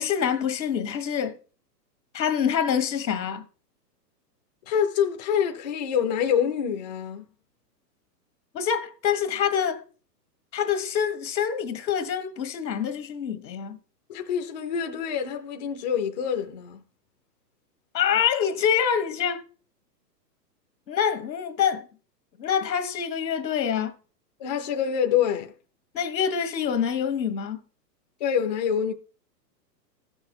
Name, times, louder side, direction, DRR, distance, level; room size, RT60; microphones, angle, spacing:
voice 1, 0.0-1.4 2.1-3.4 8.5-9.8 10.5-13.8 17.9-19.4 20.9-21.9 22.4-23.9 25.9-27.6, left 8 dB, 85° left, 1.5 m, -26 dB
voice 2, 4.7-7.2 14.1-16.8 24.4-25.5 28.2-28.9, left 8 dB, 30° left, 0.4 m, -26 dB
14.5 x 6.3 x 4.4 m
hypercardioid pair, 150°, 50 cm